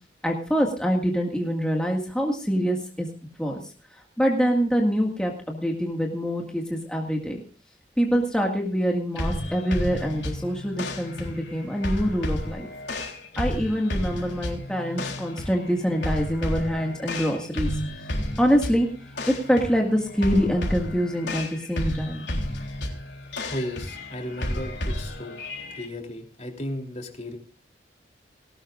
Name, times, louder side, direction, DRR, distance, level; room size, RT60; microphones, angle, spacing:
voice 1, 0.2-3.1 3.4-3.6 4.2-7.4 8.0-12.7 13.4-17.7 18.4-18.9 19.3-22.3, equal, 5° left, 0 dB, 1.8 m, -25 dB
sound 1, 9.1-25.9, left 1 dB, 90° left, 3.7 m, -32 dB
voice 2, 23.4-25.3 25.8-27.4, left 1 dB, 40° left, 2 dB, 3.2 m, -34 dB
19.5 x 18.0 x 2.5 m, 0.38 s
head